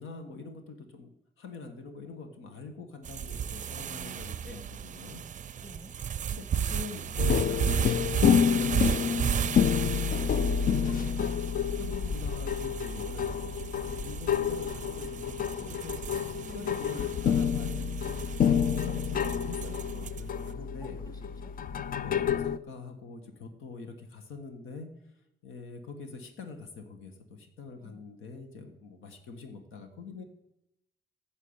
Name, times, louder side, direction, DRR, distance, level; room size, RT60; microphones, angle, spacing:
voice 1, 0.0-5.2 6.3-7.6 7.9-10.1 10.7-11.3 11.7-16.2 16.5-17.9 18.4-21.0 22.0-24.9 25.4-30.2, left 4 dB, 85° left, 7 dB, 1.6 m, -44 dB
sound 1, 3.1-20.4, right 8 dB, 40° right, 0.5 m, -35 dB
voice 2, 5.5-5.9 16.3-16.9 20.8-22.0 27.8-28.0, equal, 20° left, 7 dB, 2.2 m, -52 dB
sound 2, 7.2-22.6, left 7 dB, 45° left, 0.5 m, -29 dB
9.3 x 7.4 x 8.8 m, 0.85 s
cardioid pair, 90°, 20 cm